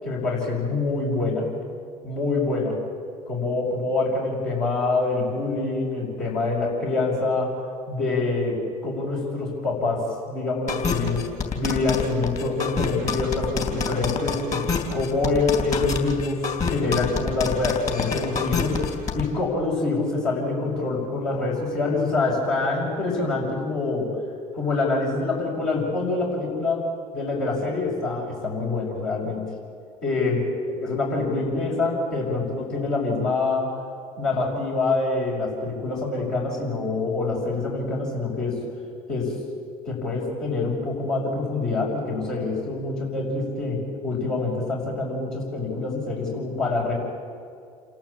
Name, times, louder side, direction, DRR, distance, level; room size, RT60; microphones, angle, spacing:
voice 1, 0.0-1.5 2.0-2.8 3.3-7.5 7.9-11.3 11.6-18.8 19.1-24.1 24.5-26.8 27.1-29.4 30.0-30.4 30.7-33.7 34.2-38.6 39.1-39.4 39.9-46.9, left 3 dB, 70° left, -5 dB, 5.8 m, -25 dB
sound 1, 10.7-19.2, left 5 dB, 40° left, 3.5 m, -27 dB
28.0 x 12.0 x 8.6 m, 2.4 s
hypercardioid pair, 60°, 18 cm